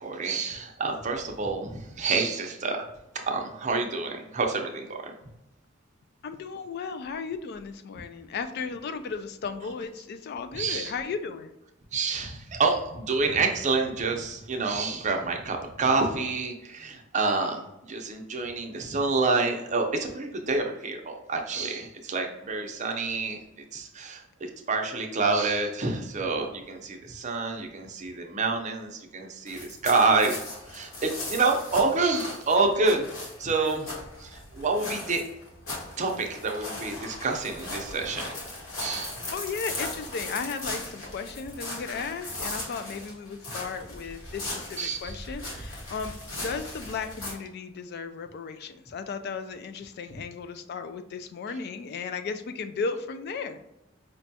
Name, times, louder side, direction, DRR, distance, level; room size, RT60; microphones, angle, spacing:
voice 1, 0.0-2.9 3.3-5.1 10.5-10.9 11.9-23.4 23.7-30.4 30.7-33.1 33.4-33.9 34.2-35.2 36.0-38.3 38.8-39.2 44.8-45.2 45.5-45.6, right 3 dB, 35° right, 3 dB, 0.6 m, -28 dB
voice 2, 6.2-11.5 39.3-53.6, left 5 dB, 50° left, 9 dB, 0.3 m, -35 dB
sound 1, 29.5-47.3, left 2 dB, 80° left, 1.3 m, -38 dB
5.1 x 2.2 x 2.7 m, 0.90 s
head